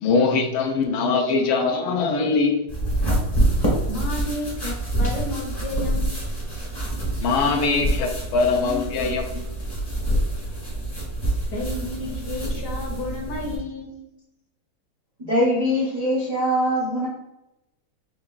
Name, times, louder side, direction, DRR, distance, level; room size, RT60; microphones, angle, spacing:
voice 1, 0.0-2.7 7.2-9.4, left 4 dB, 75° left, 2 dB, 1.4 m, -22 dB
sound 1, 2.7-13.6, right 1 dB, 25° left, 0.5 m, -26 dB
voice 2, 3.9-6.3 11.5-14.1, left 2 dB, 55° left, -1 dB, 1.3 m, -32 dB
voice 3, 15.2-17.1, equal, 75° right, -6 dB, 0.3 m, -22 dB
5.0 x 3.4 x 2.4 m, 0.94 s
omnidirectional pair, 2.4 m